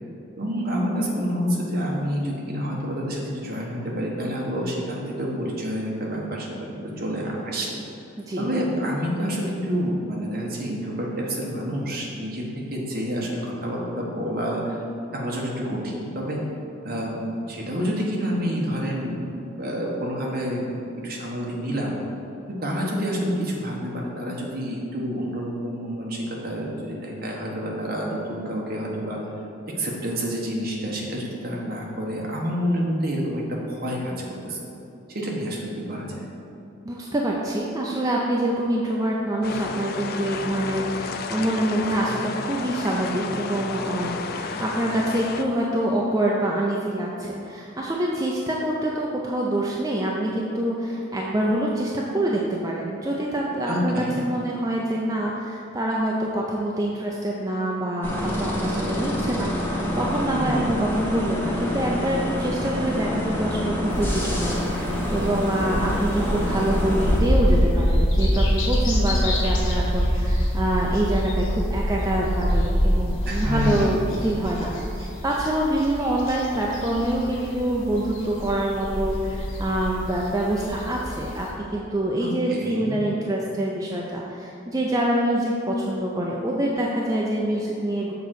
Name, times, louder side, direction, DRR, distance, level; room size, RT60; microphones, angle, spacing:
voice 1, 0.3-7.8 8.4-14.8 15.1-16.4 16.8-19.3 19.6-22.0 22.5-29.3 29.7-34.1 34.4-34.6 35.1-36.3 53.7-54.2 60.3-60.8 73.3-74.2 82.2-83.1, equal, 50° right, -3 dB, 1.3 m, -28 dB
voice 2, 8.2-8.5 36.9-88.1, right 1 dB, 15° right, -3 dB, 0.4 m, -26 dB
sound 1, 39.4-45.4, left 4 dB, 50° left, 0.4 m, -32 dB
sound 2, 58.0-67.2, left 1 dB, 10° left, 0.9 m, -27 dB
sound 3, 63.9-81.5, equal, 80° left, 1.6 m, -25 dB
6.8 x 3.9 x 6.4 m, 2.8 s
head